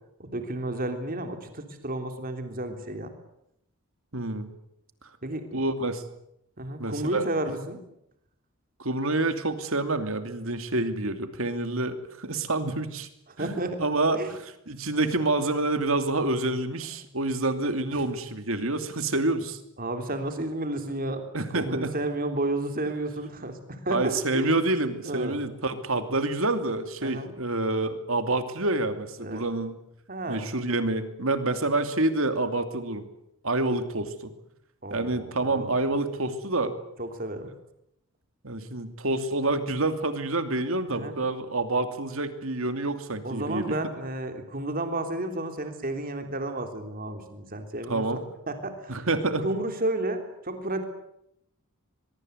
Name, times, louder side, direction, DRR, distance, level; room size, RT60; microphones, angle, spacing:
voice 1, 0.2-3.1 5.2-5.6 6.6-7.8 13.3-13.8 14.1-14.3 17.9-18.0 19.8-21.2 21.5-24.5 25.0-25.3 27.0-27.3 29.2-29.4 30.1-30.4 34.8-35.7 37.0-37.5 40.9-41.2 43.2-48.0 48.5-49.0 49.4-50.8, right 2 dB, 40° right, 6 dB, 3.4 m, -32 dB
voice 2, 4.1-4.5 5.5-6.0 6.8-7.2 8.8-13.1 13.4-14.4 14.7-19.6 21.3-21.9 23.9-29.8 30.3-33.0 33.4-34.3 34.9-36.7 38.4-43.7 47.9-48.2 48.9-49.5, right 2 dB, 65° right, 9 dB, 2.7 m, -27 dB
23.0 x 23.0 x 8.1 m, 0.78 s
head